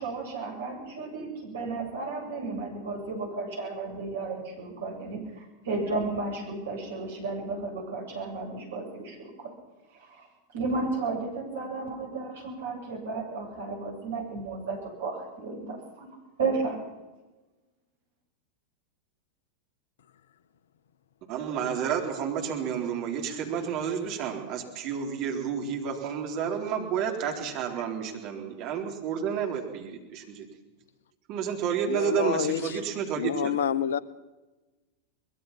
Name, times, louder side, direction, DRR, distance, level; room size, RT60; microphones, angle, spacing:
voice 1, 0.0-9.5 9.9-10.3 10.5-16.1 16.4-16.8, right 3 dB, 60° right, 1 dB, 8.0 m, -33 dB
voice 2, 21.3-30.5 31.3-33.5, right 8 dB, 40° right, 1 dB, 4.0 m, -30 dB
voice 3, 31.8-32.8 33.2-34.0, left 9 dB, 60° left, 19 dB, 0.9 m, -28 dB
23.5 x 21.5 x 5.9 m, 1.1 s
figure-of-eight pair, 90°, 0 cm